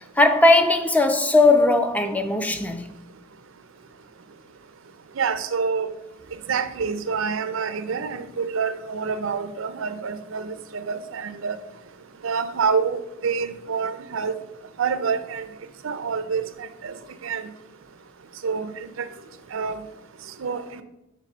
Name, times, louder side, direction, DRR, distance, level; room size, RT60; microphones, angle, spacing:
voice 1, 0.0-2.9, left 2 dB, 5° left, 0.5 m, -18 dB
voice 2, 5.2-5.9 6.5-11.6 12.2-14.4 14.8-15.5 15.8-17.0 17.2-17.5 18.4-19.1 19.5-19.8 20.4-20.8, right 5 dB, 70° right, 0.5 m, -27 dB
6.8 x 3.4 x 6.1 m
head